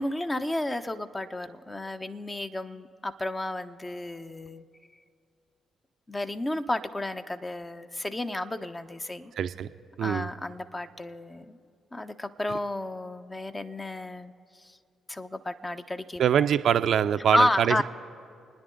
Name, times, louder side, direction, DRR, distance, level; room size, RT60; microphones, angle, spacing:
voice 1, 0.0-4.6 6.1-9.3 10.0-11.6 11.9-14.3 15.1-16.5 17.3-17.8, left 1 dB, 25° left, 9 dB, 0.8 m, -31 dB
voice 2, 9.4-9.7 10.0-10.3 16.2-17.8, right 9 dB, 65° right, 10 dB, 0.5 m, -24 dB
29.5 x 10.0 x 3.9 m, 2.4 s
hypercardioid pair, 45°, 0 cm